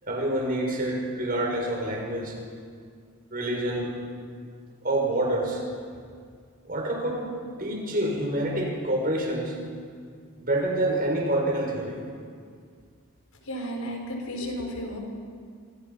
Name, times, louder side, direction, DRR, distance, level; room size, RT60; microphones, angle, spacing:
voice 1, 0.0-2.4 3.3-3.9 4.8-5.6 6.7-7.2 7.6-9.6 10.4-12.0, right 1 dB, 40° right, 0 dB, 6.3 m, -27 dB
voice 2, 13.5-15.0, equal, 75° left, 1 dB, 5.6 m, -33 dB
28.5 x 25.5 x 5.9 m, 2.1 s
head